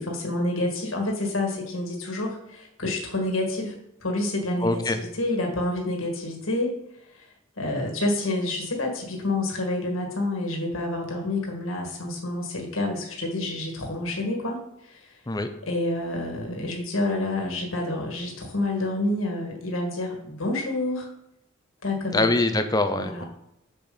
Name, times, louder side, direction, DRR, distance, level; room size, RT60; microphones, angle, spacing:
voice 1, 0.0-6.7 7.6-14.6 14.9-15.1 15.7-21.1 21.8-22.3 22.9-23.2, left 2 dB, 80° left, 1 dB, 1.9 m, -28 dB
voice 2, 4.6-5.0 15.3-15.5 22.1-23.2, left 2 dB, 20° left, 8 dB, 0.6 m, -23 dB
6.9 x 6.8 x 3.9 m, 0.81 s
head